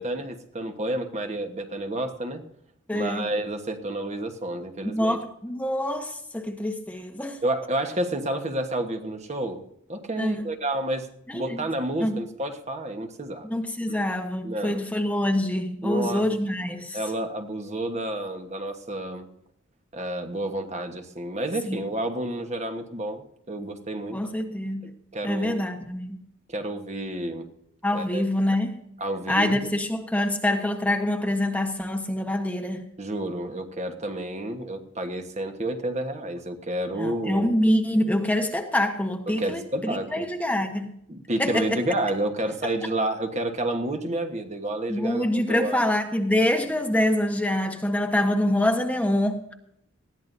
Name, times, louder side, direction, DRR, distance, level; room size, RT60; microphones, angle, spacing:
voice 1, 0.0-2.4 2.9-5.2 7.4-9.6 9.9-11.1 11.3-13.5 13.9-14.0 14.4-14.8 15.8-16.3 16.9-19.3 19.9-24.2 24.8-25.6 26.5-27.5 27.9-28.3 29.0-29.7 33.0-37.5 39.3-40.3 41.1-45.9, right 1 dB, 35° right, 5 dB, 1.3 m, -30 dB
voice 2, 2.9-3.3 4.8-7.4 10.2-10.4 11.3-11.7 12.0-12.2 13.4-17.0 21.6-21.8 24.1-24.8 25.2-26.2 27.8-28.8 29.3-32.8 37.0-40.9 41.4-41.8 44.9-49.5, left 1 dB, 5° left, 4 dB, 1.1 m, -25 dB
20.0 x 15.0 x 2.7 m, 0.73 s
head